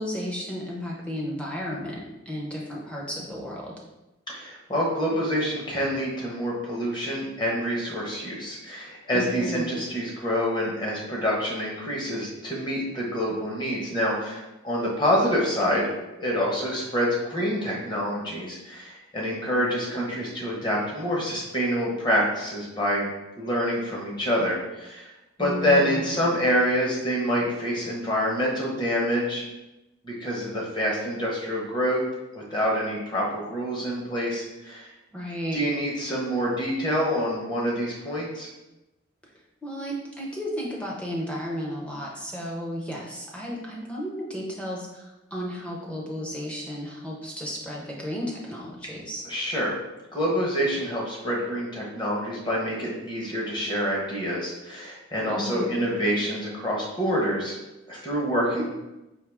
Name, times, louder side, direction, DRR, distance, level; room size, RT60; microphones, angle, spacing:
voice 1, 0.0-3.8 9.1-9.7 25.4-26.1 35.1-35.6 39.6-49.2 55.3-55.8 58.6-58.7, equal, 5° left, -3 dB, 0.7 m, -33 dB
voice 2, 4.3-15.9 16.2-23.1 23.4-25.1 25.4-29.5 30.0-32.0 32.3-34.9 35.5-38.5 49.2-49.7 50.1-57.5 57.9-58.6, equal, 20° left, -3 dB, 1.0 m, -26 dB
4.6 x 2.8 x 3.5 m, 0.97 s
head